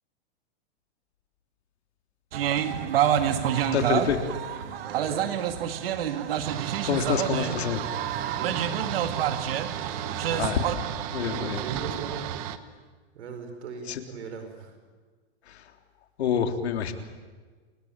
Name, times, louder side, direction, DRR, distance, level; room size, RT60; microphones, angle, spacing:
sound 1, 2.3-10.8, right 9 dB, 60° right, 2.2 m, -28 dB
voice 1, 3.6-4.2 6.8-7.8 10.4-10.6 11.1-11.6 13.9-14.0 15.5-15.6 16.2-16.9, left 8 dB, 75° left, 6 dB, 3.5 m, -27 dB
voice 2, 4.8-5.3 8.2-9.0 9.8-10.5 11.2-12.7 13.1-14.7, right 4 dB, 80° right, 6 dB, 5.3 m, -40 dB
sound 2, 6.4-12.6, right 11 dB, 30° right, 1.2 m, -34 dB
29.0 x 22.0 x 8.9 m, 1.4 s
supercardioid pair, 170°, 33 cm